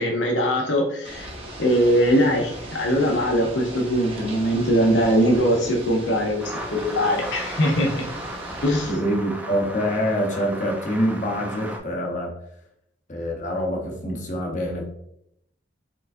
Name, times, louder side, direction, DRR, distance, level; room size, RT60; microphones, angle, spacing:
voice 1, 0.0-1.3 1.6-8.0 8.6-8.9, equal, 70° left, 1 dB, 0.7 m, -21 dB
Ocean / Boat Water vehicle, 1.0-8.9, right 1 dB, 30° right, 0.9 m, -38 dB
sound 1, 6.4-11.8, right 1 dB, 10° right, 0.4 m, -36 dB
voice 2, 8.9-12.3 13.1-14.9, equal, 40° left, 1 dB, 0.9 m, -25 dB
4.7 x 3.8 x 2.5 m, 0.76 s
head